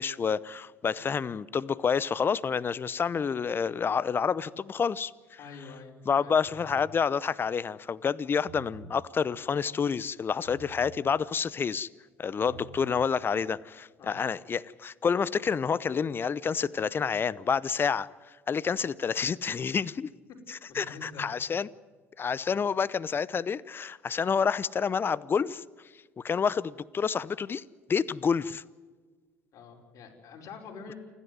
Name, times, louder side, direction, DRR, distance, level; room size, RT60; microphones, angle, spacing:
voice 1, 0.0-5.1 6.1-11.9 12.2-18.1 18.5-20.1 20.5-21.7 22.2-25.6 26.2-27.6 27.9-28.6, left 6 dB, 35° left, 0.8 m, -28 dB
voice 2, 5.4-6.4 12.4-12.6 14.0-14.3 19.5-19.6 20.3-20.4 20.7-21.2 22.4-22.5 29.5-30.9, left 5 dB, 50° left, 4.8 m, -47 dB
sound 1, 6.5-7.0 8.3-9.0 10.5-11.0 12.3-13.0, right 6 dB, 65° right, 7.8 m, -49 dB
28.5 x 11.5 x 9.5 m
hypercardioid pair, 60°, 7 cm